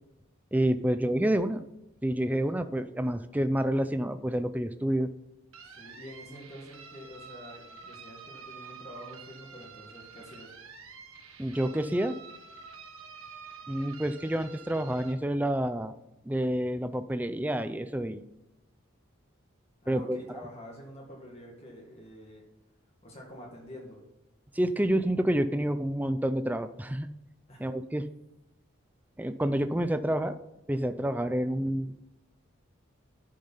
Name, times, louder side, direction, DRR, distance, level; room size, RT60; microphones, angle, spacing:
voice 1, 0.5-1.6 2.0-5.1 11.4-12.2 13.7-15.9 16.3-18.2 19.9-20.2 24.5-27.1 27.6-28.1 29.2-30.4 30.7-31.9, right 1 dB, 10° right, 10 dB, 0.4 m, -28 dB
sound 1, 5.5-15.1, right 5 dB, 90° right, 1.6 m, -48 dB
voice 2, 5.6-10.5 19.8-22.4 23.0-24.0 27.5-27.7, equal, 30° left, -1 dB, 1.9 m, -47 dB
10.5 x 6.7 x 5.6 m, 0.90 s
head